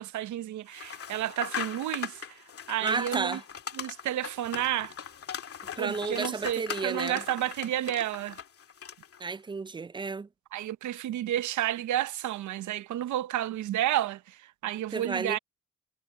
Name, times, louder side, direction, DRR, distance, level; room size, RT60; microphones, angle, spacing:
voice 1, 0.0-2.2 2.7-3.4 3.8-4.9 5.8-8.4 10.5-14.4 14.6-15.4, right 12 dB, 75° right, 0.8 m, -31 dB
sound 1, 0.7-9.2, left 8 dB, 50° left, 2.3 m, -40 dB
voice 2, 2.8-3.4 5.8-7.2 9.2-10.3 14.9-15.4, right 4 dB, 15° right, 0.3 m, -32 dB
cardioid pair, 90°, 30 cm